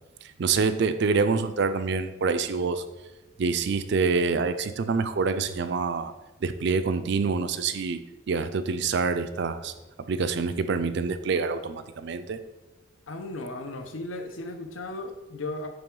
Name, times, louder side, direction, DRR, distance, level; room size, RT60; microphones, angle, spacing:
voice 1, 0.4-2.8 3.4-6.1 6.4-8.0 8.3-9.7 10.1-12.4, right 4 dB, 60° right, 11 dB, 0.4 m, -26 dB
voice 2, 13.1-15.7, left 2 dB, 80° left, 6 dB, 0.8 m, -35 dB
8.7 x 3.4 x 3.8 m, 1.1 s
head